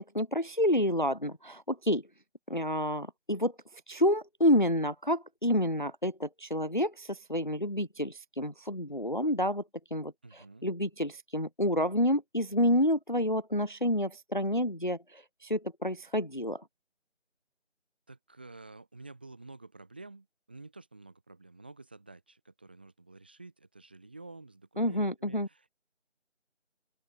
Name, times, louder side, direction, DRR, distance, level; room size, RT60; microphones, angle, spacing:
voice 1, 0.0-2.0 2.5-3.5 3.9-9.6 9.9-16.6 24.8-25.5, equal, 45° left, 0.5 m, -29 dB
voice 2, 10.2-10.7 18.1-25.8, right 3 dB, 10° right, 2.5 m, -50 dB
open air
figure-of-eight pair, 170°, 36 cm